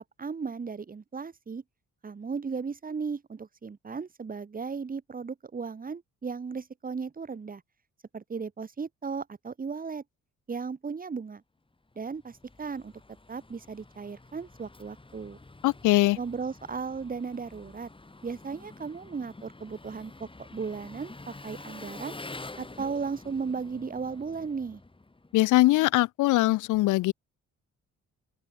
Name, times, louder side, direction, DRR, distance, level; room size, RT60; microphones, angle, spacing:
voice 1, 0.2-1.6 2.0-7.6 8.1-10.0 10.5-11.4 11.9-12.9 13.3-15.4 16.2-17.9 18.2-22.2 22.6-24.8, right 5 dB, 30° right, 1.6 m, -36 dB
Engine, 11.9-25.5, left 2 dB, 15° left, 6.6 m, -48 dB
voice 2, 15.6-16.2 25.3-27.1, left 18 dB, 85° left, 0.6 m, -22 dB
open air
cardioid pair, 90°, 30 cm